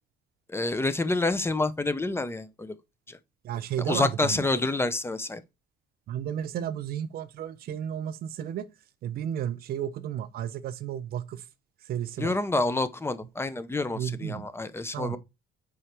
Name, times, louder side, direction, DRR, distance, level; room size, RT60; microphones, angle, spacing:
voice 1, 0.5-2.7 3.1-3.2 3.9-5.4 12.2-15.2, left 2 dB, 15° left, 0.7 m, -28 dB
voice 2, 3.4-4.5 6.1-8.7 9.0-11.4 11.9-12.3 13.9-14.5 14.9-15.2, right 10 dB, 65° right, 0.8 m, -33 dB
5.0 x 4.9 x 4.4 m
cardioid pair, 110°, 17 cm